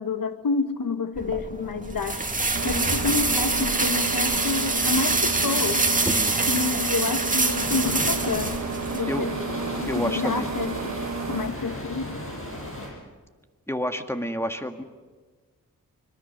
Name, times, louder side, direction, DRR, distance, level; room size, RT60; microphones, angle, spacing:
voice 1, 0.0-2.2 2.6-5.9 6.5-8.6 8.9-9.3 9.7-11.0 11.3-12.2, left 4 dB, 75° left, 9 dB, 1.7 m, -28 dB
sound 1, 1.2-9.0, right 2 dB, 25° right, 2.2 m, -25 dB
sound 2, 2.5-11.5, right 4 dB, 50° right, 1.2 m, -32 dB
voice 2, 6.0-6.4 9.1-9.3 9.9-10.5 13.7-14.8, equal, 5° left, 6 dB, 1.8 m, -29 dB
sound 3, 7.6-12.9, left 1 dB, 40° left, 7.5 m, -35 dB
25.5 x 22.5 x 6.7 m, 1.4 s
wide cardioid pair, 85°, 35 cm